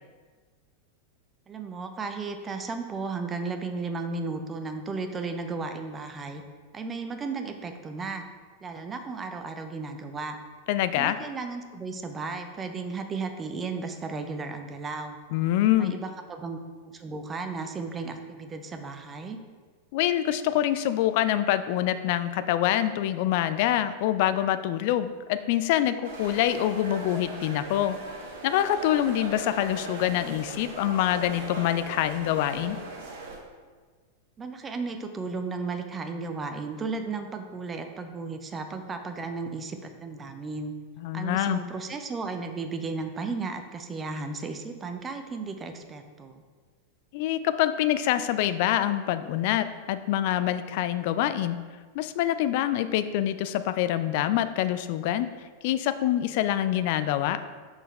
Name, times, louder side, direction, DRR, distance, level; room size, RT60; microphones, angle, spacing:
voice 1, 1.5-6.4 6.7-8.2 8.6-10.4 11.0-15.2 15.8-16.6 16.9-19.4 34.4-40.7 41.1-46.4, right 4 dB, 20° right, 6 dB, 0.6 m, -34 dB
voice 2, 10.7-11.2 15.3-15.9 19.9-28.0 28.4-32.8 41.0-41.6 47.1-51.6 51.9-55.3 55.6-57.4, left 12 dB, 50° left, 12 dB, 0.3 m, -25 dB
sound 1, 26.0-33.4, right 2 dB, 55° right, 1.1 m, -39 dB
6.3 x 5.4 x 3.1 m, 1.5 s
figure-of-eight pair, 90°, 0 cm